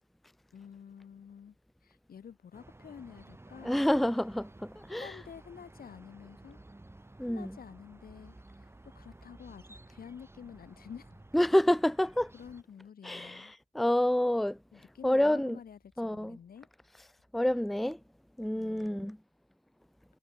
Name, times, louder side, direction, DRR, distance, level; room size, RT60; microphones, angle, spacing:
voice 1, 0.5-1.5 1.8-3.9 4.9-6.6 7.2-11.1 12.3-13.5 14.7-16.7 18.5-19.1, left 7 dB, 70° left, 1.7 m, -49 dB
sound 1, 2.5-12.6, right 2 dB, 15° right, 1.5 m, -54 dB
voice 2, 3.6-5.1 7.2-7.6 11.3-12.3 13.0-14.6 15.0-15.6 16.0-16.4 17.3-18.0 18.4-19.2, left 1 dB, ahead, 0.6 m, -28 dB
cardioid pair, 65°, 16 cm